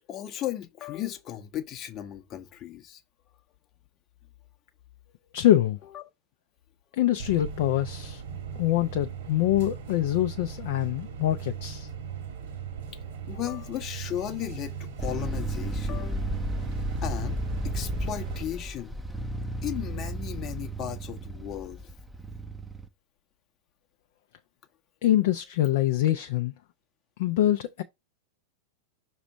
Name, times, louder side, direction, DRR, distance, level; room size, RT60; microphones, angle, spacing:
voice 1, 0.1-3.0 5.9-6.0 13.3-16.3 17.0-17.4 17.6-19.0 19.6-21.8, left 12 dB, 35° left, 0.9 m, -35 dB
voice 2, 5.3-5.8 7.0-8.2 8.6-11.9 25.0-26.5 27.2-27.8, left 13 dB, 50° left, 0.5 m, -24 dB
sound 1, 7.2-18.4, right 7 dB, 55° right, 1.7 m, -39 dB
sound 2, 15.0-22.9, right 1 dB, 5° right, 0.7 m, -33 dB
6.0 x 3.1 x 5.3 m
figure-of-eight pair, 90°, 0 cm